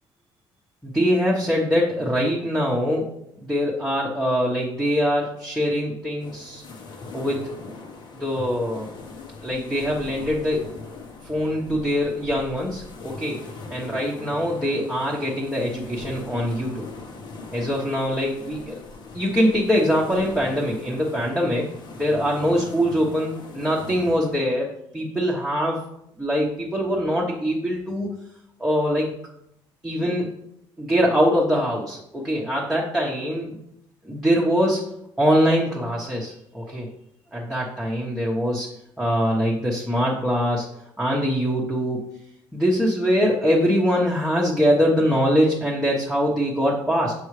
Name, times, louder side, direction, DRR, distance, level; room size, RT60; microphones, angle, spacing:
voice 1, 0.8-3.1 3.4-6.6 7.1-7.5 8.2-8.9 9.4-10.7 11.2-13.4 13.7-16.8 17.5-18.8 19.1-25.8 26.2-28.1 28.6-29.1 29.8-30.3 30.8-33.6 34.0-34.8 35.2-36.9 37.3-38.7 39.0-40.7 41.0-42.0 42.5-47.1, equal, 5° right, -4 dB, 1.1 m, -23 dB
sound 1, 6.2-24.4, left 3 dB, 50° left, 1.1 m, -40 dB
7.0 x 4.8 x 3.2 m, 0.77 s
cardioid pair, 125°, 10 cm